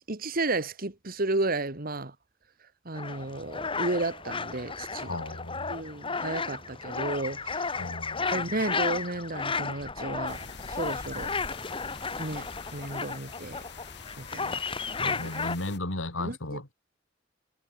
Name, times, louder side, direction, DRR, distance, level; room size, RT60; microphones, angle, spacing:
voice 1, 0.0-2.2 2.9-5.2 5.7-7.8 8.2-11.3 12.2-13.6 14.2-14.6 15.1-15.5 16.2-16.7, right 2 dB, 50° right, 2.1 m, -33 dB
sound 1, 2.9-15.6, left 4 dB, 25° left, 1.7 m, -34 dB
voice 2, 5.1-5.6 7.8-8.3 15.0-16.7, left 2 dB, 85° left, 3.4 m, -35 dB
sound 2, 10.3-15.8, left 7 dB, 60° left, 4.0 m, -48 dB
head